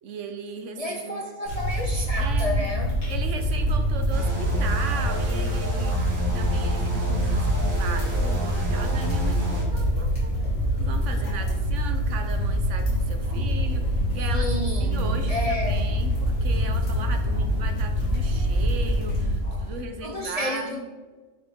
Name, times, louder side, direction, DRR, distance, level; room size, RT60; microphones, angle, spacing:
voice 1, 0.0-1.2 2.2-2.7 3.1-6.0 6.3-10.3 10.8-20.8, right 4 dB, 70° right, 7 dB, 1.0 m, -37 dB
voice 2, 0.8-3.0 13.2-13.4 14.3-15.9 17.3-17.5 19.4-19.7 20.0-20.8, left 1 dB, 40° left, 1 dB, 0.6 m, -31 dB
sound 1, 1.5-19.8, equal, 70° left, 2.4 m, -25 dB
sound 2, 4.1-9.6, right 1 dB, 90° right, 2.1 m, -33 dB
sound 3, 6.0-19.3, left 4 dB, 85° left, 2.8 m, -39 dB
8.4 x 5.0 x 3.5 m, 1.4 s
omnidirectional pair, 1.4 m